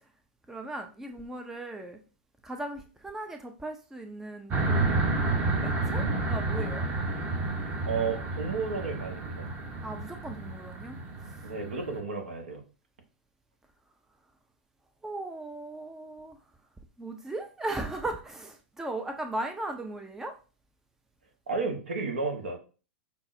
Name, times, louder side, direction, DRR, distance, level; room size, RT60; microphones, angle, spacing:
voice 1, 0.5-2.0 2.4-4.9 5.6-6.9 9.8-11.5 15.0-16.4 17.0-20.3, right 2 dB, 5° right, 5 dB, 0.4 m, -37 dB
sound 1, 4.5-12.0, right 3 dB, 25° right, 0.8 m, -30 dB
voice 2, 7.9-9.5 11.4-12.6 21.5-22.6, right 4 dB, 70° right, 3 dB, 0.9 m, -32 dB
5.2 x 2.0 x 2.6 m, 0.34 s
figure-of-eight pair, 100°, 7 cm